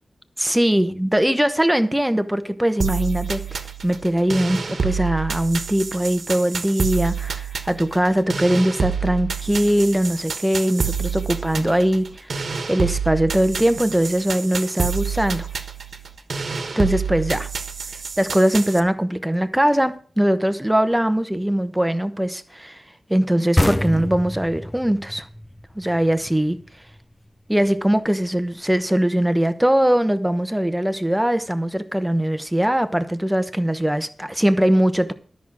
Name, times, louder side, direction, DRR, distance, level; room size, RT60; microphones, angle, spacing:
voice 1, 0.4-12.4 12.7-15.5 16.8-17.5 18.2-22.8 23.1-25.3 25.7-26.6 27.5-35.1, right 1 dB, 5° right, 0.9 m, -21 dB
sound 1, 2.8-18.8, right 6 dB, 60° right, 1.3 m, -28 dB
sound 2, 23.6-27.0, left 1 dB, 10° left, 0.5 m, -25 dB
13.0 x 6.3 x 7.3 m
wide cardioid pair, 145°, 0 cm